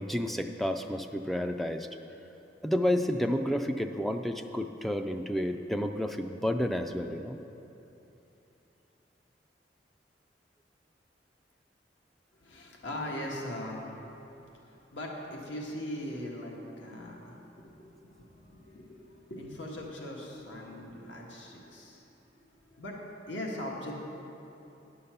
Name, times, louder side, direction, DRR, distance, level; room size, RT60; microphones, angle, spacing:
voice 1, 0.0-1.9 2.6-7.4, left 1 dB, ahead, 5 dB, 0.3 m, -30 dB
voice 2, 12.3-14.1 14.4-22.0 22.3-23.9, left 1 dB, 80° left, -2 dB, 1.5 m, -40 dB
10.0 x 5.6 x 6.7 m, 3.0 s
head